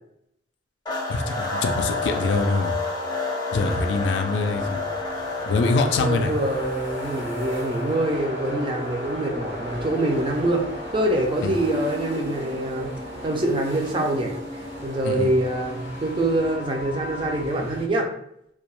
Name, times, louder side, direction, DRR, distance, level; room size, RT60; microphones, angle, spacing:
sound 1, 0.9-17.5, left 2 dB, 25° left, 0.5 m, -32 dB
voice 1, 1.1-2.7 3.5-4.8 5.4-6.3 11.4-11.5 15.0-15.3, left 3 dB, 75° left, 6 dB, 0.3 m, -24 dB
sound 2, 4.4-17.9, equal, 75° right, 0.9 m, -39 dB
voice 2, 6.0-10.6 10.9-12.9 13.2-14.3 14.8-18.1, right 1 dB, 30° right, 1 dB, 0.4 m, -25 dB
2.3 x 2.1 x 2.9 m, 0.74 s
head